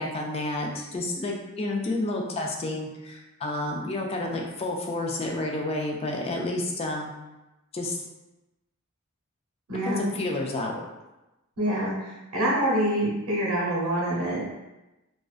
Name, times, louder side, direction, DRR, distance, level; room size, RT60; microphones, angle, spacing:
voice 1, 0.0-7.1 7.7-8.0 10.0-10.7, left 2 dB, 25° left, 0 dB, 0.3 m, -30 dB
voice 2, 9.7-10.0 11.6-14.4, right 1 dB, 90° right, -5 dB, 0.8 m, -26 dB
2.4 x 2.1 x 2.4 m, 0.99 s
head